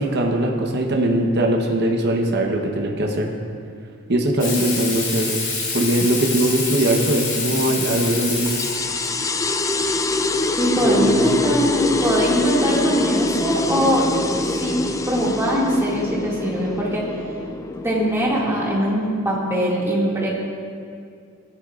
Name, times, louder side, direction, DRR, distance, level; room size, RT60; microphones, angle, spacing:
voice 1, 0.0-3.3 4.1-5.3 5.7-8.7 10.8-11.4, right 1 dB, 50° right, 1 dB, 1.0 m, -21 dB
Water tap faucet / Sink (filling or washing), 4.4-9.1 10.6-10.7, left 3 dB, 60° left, 2.3 m, -27 dB
sound 1, 8.4-19.5, left 2 dB, 15° left, 0.3 m, -24 dB
voice 2, 10.6-14.0 14.4-14.8 15.1-17.0 17.8-20.3, equal, 10° right, -6 dB, 2.2 m, -22 dB
16.5 x 11.5 x 2.5 m, 2.3 s
head